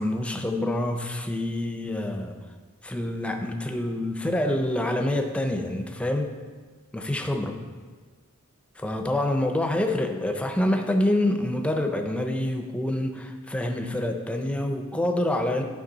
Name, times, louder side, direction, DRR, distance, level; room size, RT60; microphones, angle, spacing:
voice 1, 0.0-2.4 2.8-6.3 6.9-7.6 8.8-15.6, left 1 dB, 5° left, 4 dB, 0.6 m, -26 dB
11.5 x 5.1 x 4.0 m, 1.5 s
head